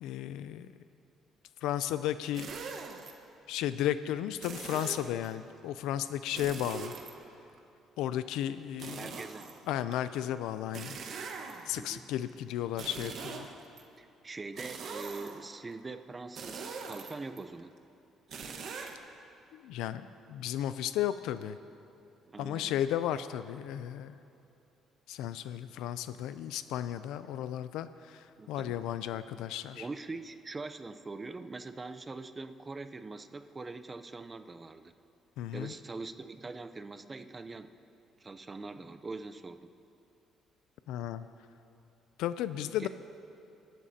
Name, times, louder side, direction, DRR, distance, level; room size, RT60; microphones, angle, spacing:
voice 1, 0.0-0.7 1.6-2.5 3.5-6.9 8.0-9.1 9.7-11.0 11.7-13.5 19.5-21.6 22.4-24.1 25.1-29.9 35.4-35.7 40.9-41.2 42.2-42.9, left 11 dB, 85° left, 12 dB, 0.4 m, -34 dB
sound 1, 2.3-3.1 4.4-5.3 6.3-7.6 8.8-9.9 10.7-11.9 12.7-13.8 14.6-15.5 16.4-17.4 18.3-18.9, right 5 dB, 60° right, 1.2 m, -42 dB
voice 2, 8.9-9.5 11.8-12.1 14.0-17.7 22.2-22.7 27.2-27.4 28.4-28.8 29.7-34.9 35.5-37.7 38.2-39.7 42.8-42.9, right 3 dB, 25° right, 10 dB, 0.6 m, -43 dB
26.0 x 12.5 x 2.8 m, 2.7 s
cardioid pair, 90°, 0 cm